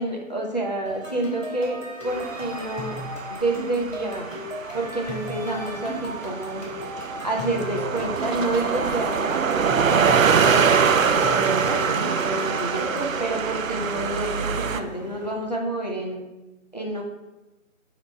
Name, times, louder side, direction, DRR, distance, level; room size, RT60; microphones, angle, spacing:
voice 1, 0.0-3.0 3.3-4.4 4.7-6.6 7.2-16.2 16.7-17.0, right 2 dB, 30° left, 0 dB, 0.6 m, -29 dB
sound 1, 0.8-13.1, left 1 dB, 10° left, 1.3 m, -36 dB
sound 2, 2.1-14.8, right 6 dB, 70° right, 0.5 m, -24 dB
sound 3, 9.6-15.3, right 1 dB, 30° right, 0.9 m, -42 dB
7.2 x 3.0 x 4.5 m, 1.0 s
figure-of-eight pair, 165°, 41 cm